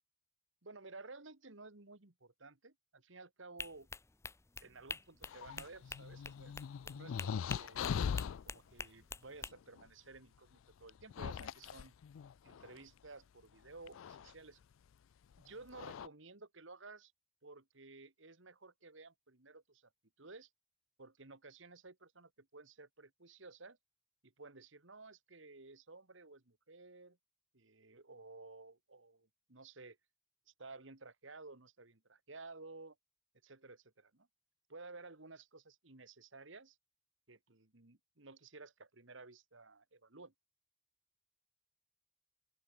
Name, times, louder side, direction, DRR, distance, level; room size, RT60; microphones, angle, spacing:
voice 1, 0.6-3.9 4.6-6.5 6.9-7.9 8.5-11.9 12.4-14.6 15.4-17.1 17.4-19.9 20.2-20.5 21.0-23.8 24.2-27.2 27.5-30.0 30.5-33.0 33.4-34.3 34.7-36.8 37.3-40.3, right 3 dB, 65° right, 2.0 m, -55 dB
sound 1, 3.6-9.5, left 4 dB, 15° left, 0.6 m, -47 dB
sound 2, 5.3-8.4 9.8-9.9 10.9-12.8 13.9-14.3 15.3-15.4 15.7-16.1, left 7 dB, 75° left, 0.4 m, -41 dB
open air
head